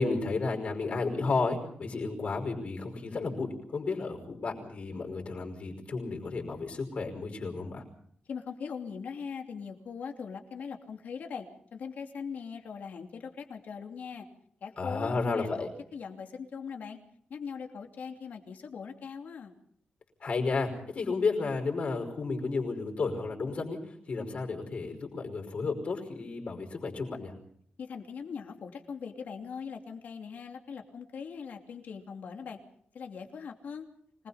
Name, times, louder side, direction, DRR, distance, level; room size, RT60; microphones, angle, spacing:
voice 1, 0.0-7.8 14.8-15.7 20.2-23.8 24.1-27.3, left 4 dB, 45° left, 3 dB, 5.3 m, -32 dB
voice 2, 8.3-11.5 11.7-14.3 14.6-17.0 17.3-19.5 27.8-32.6 32.9-33.9, left 6 dB, 65° left, 4 dB, 2.8 m, -41 dB
25.5 x 20.5 x 5.6 m, 0.65 s
wide cardioid pair, 165°, 3 cm